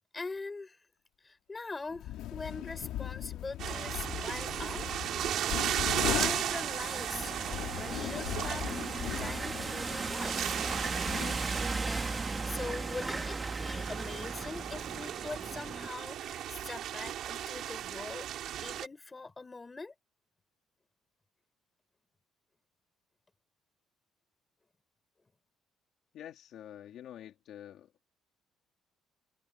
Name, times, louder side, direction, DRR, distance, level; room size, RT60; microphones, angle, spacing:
voice 1, 0.1-0.8 1.2-4.9 5.7-5.8 6.1-10.6 11.7-19.9, left 3 dB, 15° left, 5.3 m, -43 dB
sound 1, 1.9-11.8, left 13 dB, 75° left, 2.0 m, -39 dB
sound 2, 3.6-18.9, right 11 dB, 55° right, 3.7 m, -36 dB
sound 3, 3.7-15.9, right 3 dB, 15° right, 1.6 m, -38 dB
voice 2, 26.1-27.9, left 11 dB, 55° left, 2.8 m, -47 dB
cardioid pair, 165°, 0 cm